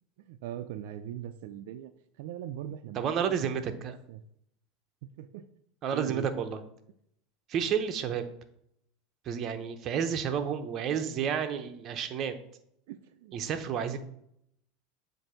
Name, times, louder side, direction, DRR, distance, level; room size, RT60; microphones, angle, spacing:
voice 1, 0.2-1.9 2.2-3.8 4.1-4.2 5.2-5.5 5.9-6.3 10.9-11.0 12.9-13.4, right 11 dB, 70° right, 8 dB, 0.4 m, -40 dB
voice 2, 3.0-4.0 5.8-6.6 7.5-8.3 9.2-12.3 13.3-14.0, right 7 dB, 40° right, 7 dB, 0.7 m, -31 dB
7.7 x 2.6 x 5.6 m, 0.74 s
supercardioid pair, 130°, 0 cm